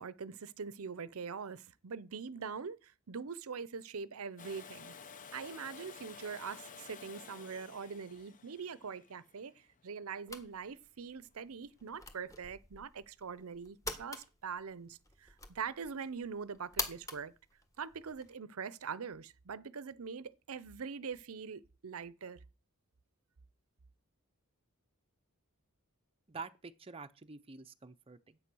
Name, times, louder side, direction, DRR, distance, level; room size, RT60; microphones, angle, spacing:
voice 1, 0.0-4.9 5.3-9.5 9.8-17.3 17.8-22.4, right 6 dB, 65° right, 0.6 m, -43 dB
Domestic sounds home sounds, 4.4-10.2 12.1-12.2, left 6 dB, 35° left, 0.7 m, -52 dB
sound 1, 10.3-18.3, left 2 dB, 15° left, 1.6 m, -46 dB
voice 2, 26.3-28.4, right 4 dB, 25° right, 0.6 m, -47 dB
11.5 x 8.4 x 6.2 m
head